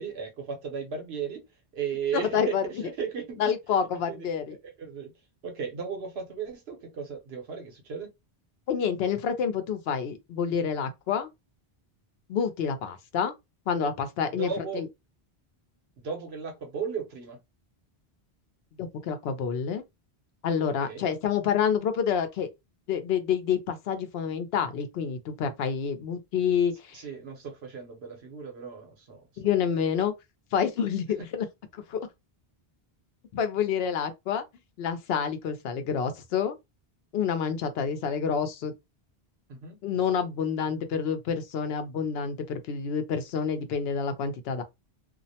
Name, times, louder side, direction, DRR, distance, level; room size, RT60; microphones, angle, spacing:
voice 1, 0.0-1.4 1.7-3.5 4.1-4.3 4.6-5.1 5.4-8.1 14.3-14.8 16.0-17.4 20.7-21.1 26.9-29.2 39.5-39.8, right 6 dB, 75° right, 1.0 m, -35 dB
voice 2, 2.1-2.6 3.4-4.6 8.7-11.3 12.3-13.3 13.7-14.9 18.8-19.8 20.4-22.5 22.9-27.0 29.4-30.1 30.5-31.4 31.7-32.0 33.3-34.4 34.8-36.5 37.1-38.7 39.8-44.6, left 7 dB, 75° left, 0.8 m, -28 dB
2.4 x 2.0 x 2.7 m
omnidirectional pair, 1.1 m